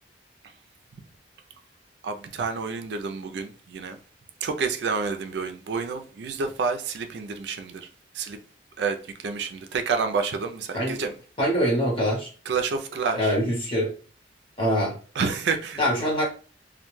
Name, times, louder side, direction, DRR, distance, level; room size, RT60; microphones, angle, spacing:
voice 1, 2.0-4.0 4.4-7.9 8.1-8.4 8.8-11.1 12.5-13.3 15.2-15.8, right 5 dB, 65° right, 0.4 m, -29 dB
voice 2, 11.4-12.3 13.2-13.9 14.6-15.0 15.8-16.2, equal, 30° left, 0.9 m, -24 dB
2.2 x 2.1 x 3.0 m
head